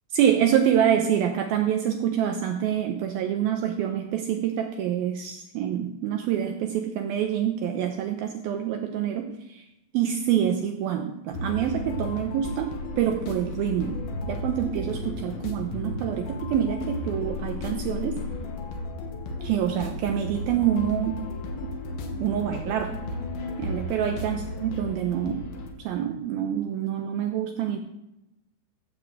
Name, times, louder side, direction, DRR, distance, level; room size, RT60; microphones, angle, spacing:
voice 1, 0.1-9.7 9.9-14.0 14.3-18.2 19.4-21.2 22.2-23.0 23.6-25.5 25.8-27.8, right 9 dB, 90° right, 4 dB, 2.1 m, -26 dB
sound 1, 11.3-25.7, left 2 dB, 65° left, 2.7 m, -34 dB
15.0 x 5.0 x 7.5 m, 0.89 s
omnidirectional pair, 5.3 m